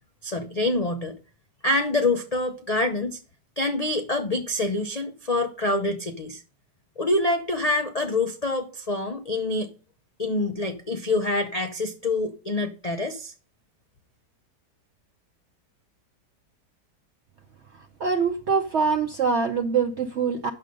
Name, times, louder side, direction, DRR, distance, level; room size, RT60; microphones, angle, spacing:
voice 1, 0.2-1.1 1.6-3.2 3.6-6.4 7.0-9.7 10.2-13.3, left 2 dB, 75° left, 0.3 m, -26 dB
voice 2, 18.0-20.5, right 5 dB, 60° right, 0.8 m, -24 dB
9.0 x 6.5 x 5.2 m
omnidirectional pair, 1.9 m